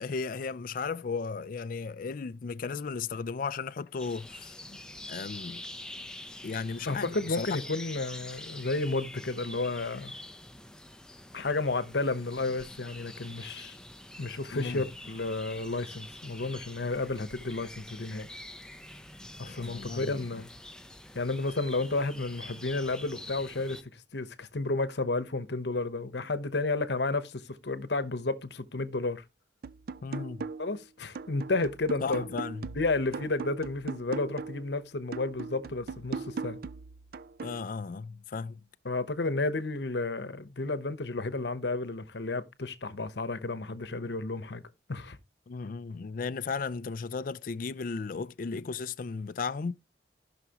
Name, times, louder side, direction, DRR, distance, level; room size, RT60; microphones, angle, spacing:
voice 1, 0.0-4.5 5.1-5.6 6.4-7.5 14.5-14.8 19.5-20.2 30.0-30.4 32.0-32.7 37.4-38.6 45.5-49.7, left 5 dB, 50° left, 0.4 m, -35 dB
sound 1, 4.0-23.8, left 1 dB, 5° left, 0.6 m, -46 dB
voice 2, 6.8-10.1 11.3-13.8 14.2-18.3 19.4-20.5 21.1-29.2 30.6-32.3 32.7-36.6 38.8-44.6 44.9-45.2, left 3 dB, 65° left, 0.9 m, -32 dB
sound 2, 29.6-30.8 31.2-34.7 35.1-37.6, right 4 dB, 55° right, 0.4 m, -39 dB
15.0 x 5.9 x 2.9 m
head